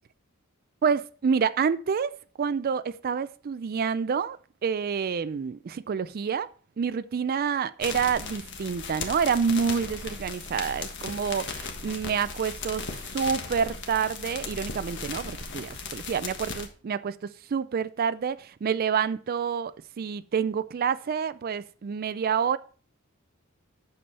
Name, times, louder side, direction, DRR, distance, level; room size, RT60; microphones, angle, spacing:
voice 1, 0.8-6.5 6.8-22.6, right 6 dB, 45° right, 0.4 m, -28 dB
sound 1, 7.8-16.7, left 4 dB, 60° left, 1.5 m, -37 dB
8.6 x 6.9 x 4.2 m
head